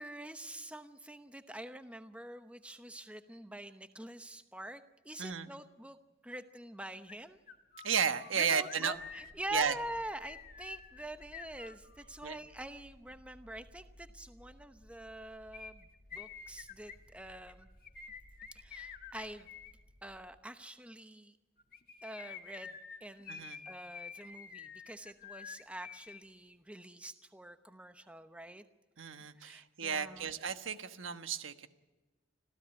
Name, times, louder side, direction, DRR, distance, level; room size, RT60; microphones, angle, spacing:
voice 1, 0.0-6.0 6.2-7.4 8.3-17.7 18.5-19.5 20.0-21.4 22.0-28.6 29.3-30.3, right 1 dB, 5° right, 9 dB, 0.9 m, -46 dB
sound 1, 7.1-7.2 7.5-12.2 15.5-19.7 21.6-26.2 26.5-26.6, left 6 dB, 45° left, 1.8 m, -49 dB
voice 2, 7.8-8.9 9.5-9.7 12.2-12.4 23.3-23.6 29.0-31.7, right 7 dB, 85° right, 8 dB, 1.3 m, -33 dB
sound 2, 8.9-20.2, equal, 45° right, 5.5 m, -60 dB
26.5 x 16.0 x 9.0 m, 1.2 s
head